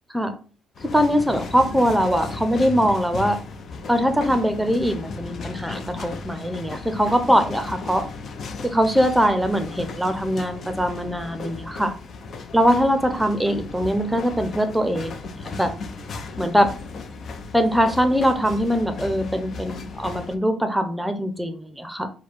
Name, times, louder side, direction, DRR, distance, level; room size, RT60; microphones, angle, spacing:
sound 1, 0.7-20.3, left 4 dB, 50° left, 0.7 m, -35 dB
voice 1, 0.9-3.4 3.9-8.0 8.6-11.9 12.5-15.3 15.6-15.7 16.4-16.7 17.5-22.1, equal, 5° right, 8 dB, 0.8 m, -22 dB
4.6 x 2.3 x 4.6 m, 0.38 s
cardioid pair, 95°, 0 cm